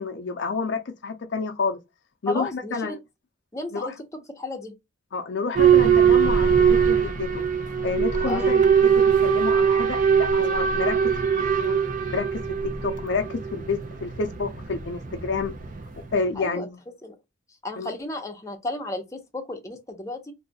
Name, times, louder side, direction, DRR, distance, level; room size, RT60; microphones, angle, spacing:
voice 1, 0.0-1.8 2.2-3.0 3.7-3.9 5.1-7.4 7.8-11.1 11.4-11.8 12.1-12.4 12.8-15.5 16.1-16.8 17.8-17.9, left 4 dB, 60° left, 0.5 m, -29 dB
voice 2, 2.3-3.0 3.5-3.9 4.4-4.7 8.3-8.6 16.4-16.7 17.0-17.1 17.6-20.3, left 2 dB, 15° left, 0.7 m, -33 dB
Boat Water vehicle / Alarm, 5.5-16.2, right 7 dB, 40° right, 0.5 m, -21 dB
2.7 x 2.3 x 3.9 m
head